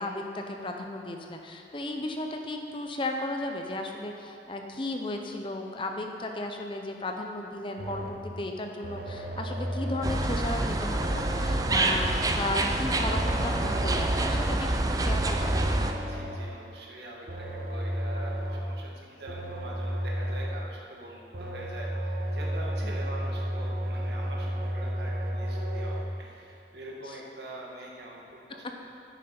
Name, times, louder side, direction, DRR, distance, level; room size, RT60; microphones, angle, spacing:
voice 1, 0.0-15.6 22.8-23.0, left 2 dB, 30° left, 3 dB, 0.6 m, -35 dB
sound 1, 7.8-8.3 8.8-10.3 10.9-12.4 13.0-14.5 15.1-16.6 17.3-18.8 19.3-20.7 21.3-26.0, equal, 55° right, 1.0 m, -33 dB
sound 2, 10.0-15.9, right 2 dB, 20° right, 0.4 m, -27 dB
voice 2, 15.9-28.9, right 1 dB, 70° right, -3 dB, 1.7 m, -44 dB
10.0 x 9.2 x 4.4 m, 2.6 s
head